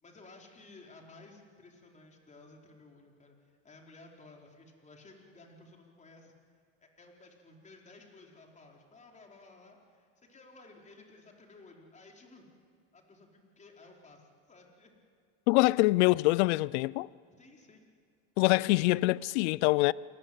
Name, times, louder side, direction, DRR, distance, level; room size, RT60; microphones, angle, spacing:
voice 1, 0.0-6.3 6.8-12.5 12.9-14.9 17.4-17.9, left 3 dB, 20° left, 4.8 m, -55 dB
voice 2, 15.5-17.1 18.4-19.9, left 21 dB, 70° left, 0.6 m, -25 dB
28.0 x 20.5 x 8.1 m
supercardioid pair, 115°, 34 cm